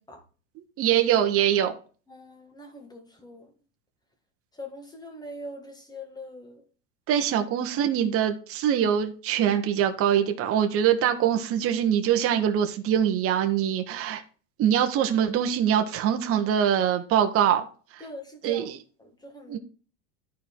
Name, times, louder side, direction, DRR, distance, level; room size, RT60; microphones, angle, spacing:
voice 1, 0.8-1.7 7.1-14.2 14.6-17.7 18.4-18.8 19.5-19.6, right 9 dB, 35° right, 1.3 m, -23 dB
voice 2, 2.1-3.5 4.5-6.6 18.0-18.7 19.0-19.6, left 1 dB, 10° left, 1.9 m, -42 dB
13.0 x 4.6 x 3.6 m
supercardioid pair, 140°, 37 cm